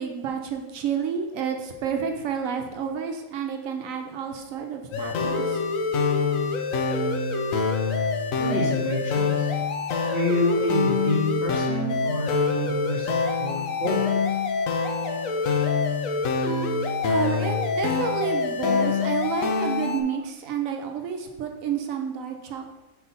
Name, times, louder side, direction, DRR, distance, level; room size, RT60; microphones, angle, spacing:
voice 1, 0.0-5.6 17.1-22.7, right 7 dB, 75° right, 4 dB, 1.0 m, -30 dB
sound 1, 4.9-20.0, left 4 dB, 75° left, 1.0 m, -25 dB
voice 2, 8.4-9.5 10.1-14.0, left 1 dB, 30° left, -4 dB, 1.4 m, -27 dB
4.5 x 4.0 x 5.6 m, 1.1 s
omnidirectional pair, 1.5 m